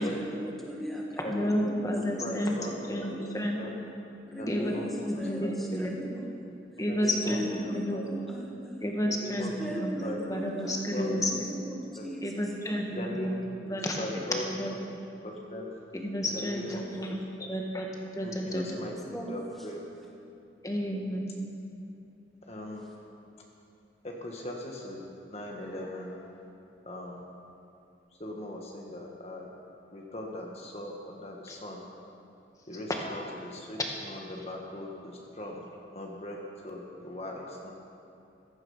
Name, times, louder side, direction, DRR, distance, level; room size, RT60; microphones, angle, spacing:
voice 1, 0.0-3.2 4.3-6.4 7.3-8.8 9.6-13.0 18.9-19.7 22.8-23.0, equal, ahead, -3 dB, 1.7 m, -39 dB
voice 2, 1.3-2.6 2.9-3.6 4.5-4.7 5.0-5.9 6.8-8.0 8.8-11.5 12.2-13.4 13.7-14.1 14.5-14.7 16.0-17.1 17.5-17.9 18.2-18.6 20.6-21.3 31.5-31.6, equal, 20° left, 0 dB, 1.8 m, -31 dB
voice 3, 2.0-2.8 3.2-3.3 3.6-3.7 4.4-5.5 6.9-8.1 9.2-10.2 10.9-11.2 12.0-12.1 12.9-13.3 13.7-14.4 15.2-15.7 16.2-17.5 18.2-19.8 22.5-22.9 24.0-26.4 26.8-27.3 28.2-29.5 29.9-31.8 32.7-35.6 35.9-37.7, left 1 dB, 35° left, -1 dB, 1.6 m, -39 dB
15.5 x 15.0 x 5.6 m, 2.7 s
head